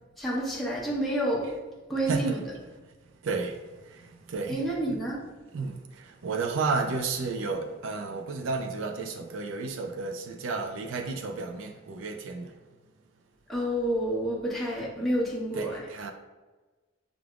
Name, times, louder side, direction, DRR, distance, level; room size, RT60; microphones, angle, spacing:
voice 1, 0.2-1.4 1.9-2.4 4.5-5.2 13.5-15.7, right 1 dB, ahead, 1.0 m, -29 dB
voice 2, 2.1-2.9 3.2-5.0 5.5-12.6 15.5-16.1, right 4 dB, 80° right, 0.4 m, -33 dB
6.2 x 3.4 x 2.4 m
head